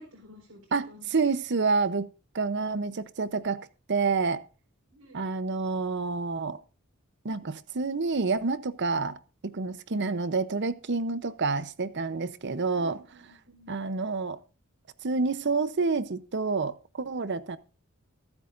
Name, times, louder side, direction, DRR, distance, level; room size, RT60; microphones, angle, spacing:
voice 1, 0.0-1.2 4.9-5.2 9.9-10.1 11.4-11.5 12.7-13.7, left 1 dB, 85° right, 4.6 m, -52 dB
voice 2, 0.7-2.1 2.3-4.4 5.1-6.6 7.2-9.2 9.4-13.0 13.7-14.4 15.0-17.6, right 4 dB, 55° right, 0.8 m, -28 dB
24.0 x 8.3 x 2.6 m
head